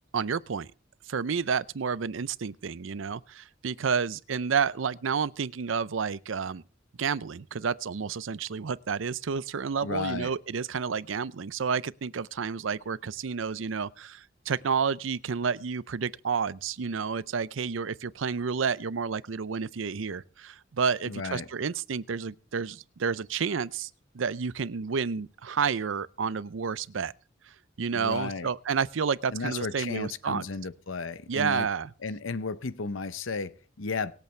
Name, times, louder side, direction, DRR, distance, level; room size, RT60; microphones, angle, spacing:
voice 1, 0.1-0.7 1.1-6.6 7.0-23.9 24.1-27.1 27.8-30.4 31.3-31.9, right 6 dB, 75° right, 0.6 m, -30 dB
voice 2, 9.8-10.3 21.0-21.5 27.9-28.5 29.3-31.7 32.0-34.1, left 4 dB, 80° left, 0.8 m, -34 dB
24.5 x 8.3 x 3.3 m
head